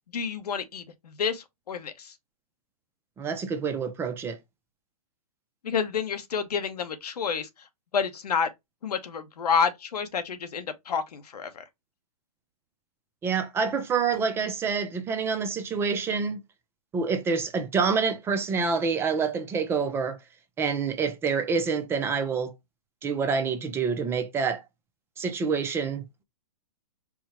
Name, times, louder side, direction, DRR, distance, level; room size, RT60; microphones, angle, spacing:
voice 1, 0.1-2.1 5.6-7.5 7.9-8.5 8.8-11.6, left 6 dB, 85° left, 1.0 m, -29 dB
voice 2, 3.2-4.4 13.2-16.4 16.9-20.2 20.6-22.5 23.0-24.6 25.2-26.2, right 5 dB, 10° right, 0.4 m, -27 dB
4.7 x 2.1 x 4.2 m
hypercardioid pair, 145°, 20 cm